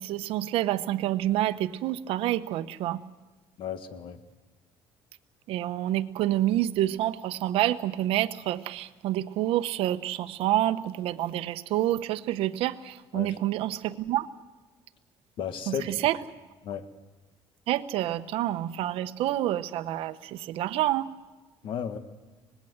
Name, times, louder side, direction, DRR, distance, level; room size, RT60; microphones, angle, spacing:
voice 1, 0.0-3.0 5.5-14.3 15.7-16.2 17.7-21.1, right 13 dB, 75° right, 11 dB, 0.9 m, -28 dB
voice 2, 3.6-4.2 13.1-13.3 15.4-15.9 16.6-16.8 21.6-22.0, left 8 dB, 60° left, 10 dB, 1.5 m, -33 dB
25.0 x 19.5 x 8.0 m, 1.2 s
cardioid pair, 140°, 10 cm